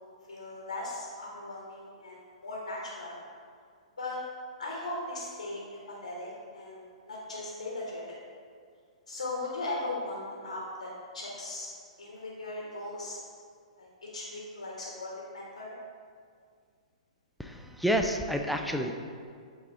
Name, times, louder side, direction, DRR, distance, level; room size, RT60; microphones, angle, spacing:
voice 1, 0.3-3.2 4.0-4.2 4.6-8.2 9.1-11.7 12.0-13.2 13.8-15.7, left 2 dB, 85° left, -4 dB, 1.5 m, -38 dB
voice 2, 17.4-18.9, equal, ahead, 3 dB, 0.4 m, -29 dB
8.3 x 4.2 x 3.6 m, 2.1 s
figure-of-eight pair, 115°, 4 cm